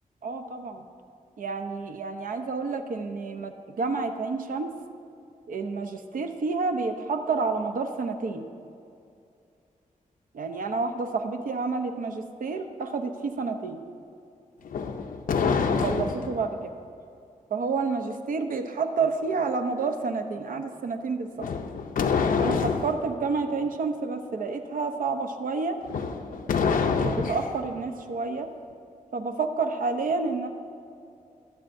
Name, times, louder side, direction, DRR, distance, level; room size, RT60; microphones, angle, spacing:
voice 1, 0.2-0.8 1.4-4.7 5.5-8.4 10.3-13.8 15.7-16.7 17.5-21.3 22.4-25.8 27.0-28.5 29.1-30.5, right 4 dB, 85° right, 6 dB, 0.7 m, -29 dB
sound 1, 14.6-16.4 21.4-23.0 25.8-27.6, left 5 dB, 85° left, 0.6 m, -26 dB
22.0 x 7.8 x 2.6 m, 2.5 s
wide cardioid pair, 155°, 14 cm